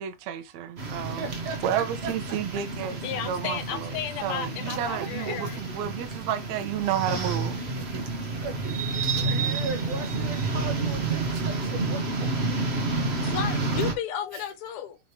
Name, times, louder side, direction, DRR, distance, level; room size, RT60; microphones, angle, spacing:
voice 1, 0.0-1.2 1.6-7.6, right 9 dB, 70° right, 1.9 m, -31 dB
sound 1, 0.8-13.9, right 3 dB, 55° right, 0.7 m, -30 dB
voice 2, 1.0-3.2 4.6-5.6 7.7-8.8 9.2-12.3 12.7-12.8 14.3-14.5, right 5 dB, 90° right, 2.7 m, -38 dB
voice 3, 3.0-5.6 13.2-15.0, left 9 dB, 60° left, 1.6 m, -33 dB
6.3 x 3.3 x 4.7 m
omnidirectional pair, 3.5 m